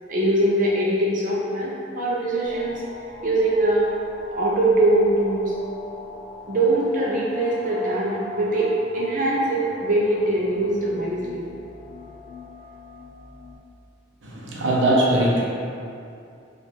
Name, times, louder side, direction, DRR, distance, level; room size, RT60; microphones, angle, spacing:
voice 1, 0.1-2.8 3.2-3.9 4.3-5.5 6.5-11.4, right 1 dB, 45° right, -6 dB, 0.6 m, -22 dB
sound 1, 2.4-13.6, equal, 45° left, 0.8 m, -40 dB
voice 2, 14.2-15.4, right 1 dB, 85° right, -4 dB, 0.8 m, -20 dB
4.1 x 2.5 x 4.8 m, 2.5 s
head